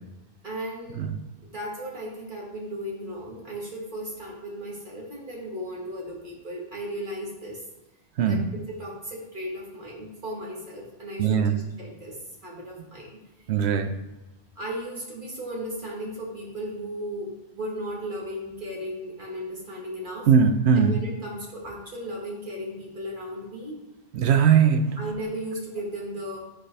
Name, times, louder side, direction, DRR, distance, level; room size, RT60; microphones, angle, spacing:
voice 1, 0.4-1.1 1.4-7.6 8.3-13.2 14.6-20.3 20.7-23.8 25.0-26.4, equal, 45° right, -3 dB, 1.9 m, -36 dB
voice 2, 11.2-11.6 13.5-13.9 20.3-21.0 24.1-24.9, right 7 dB, 70° right, 6 dB, 1.0 m, -20 dB
11.0 x 4.0 x 3.3 m, 1.0 s
omnidirectional pair, 1.1 m